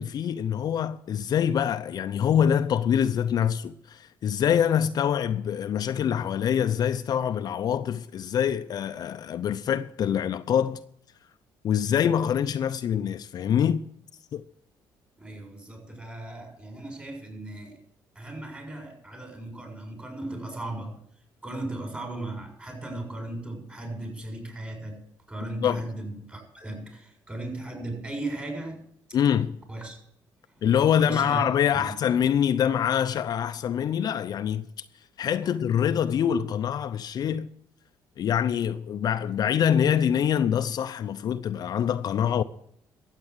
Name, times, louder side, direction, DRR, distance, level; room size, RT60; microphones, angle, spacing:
voice 1, 0.0-10.8 11.6-13.8 14.3-14.4 25.6-25.8 29.1-29.6 30.6-34.7 35.2-37.5 38.2-42.4, left 9 dB, 55° left, 0.6 m, -25 dB
voice 2, 15.2-17.8 18.1-21.0 21.4-25.0 25.3-28.8 29.7-30.0 30.5-30.6 31.0-31.5 31.7-31.8 35.4-35.5, right 2 dB, 15° right, 6.8 m, -37 dB
13.5 x 8.4 x 8.1 m
cardioid pair, 100°, 8 cm